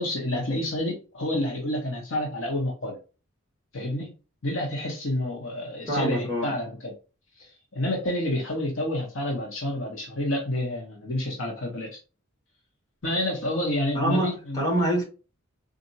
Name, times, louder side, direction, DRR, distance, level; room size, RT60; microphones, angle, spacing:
voice 1, 0.0-3.0 3.7-4.1 4.4-6.9 7.7-12.0 13.0-14.6, left 1 dB, 70° left, 1.0 m, -29 dB
voice 2, 5.9-6.5 13.9-15.0, right 1 dB, 20° left, 1.8 m, -25 dB
4.1 x 2.5 x 2.7 m
head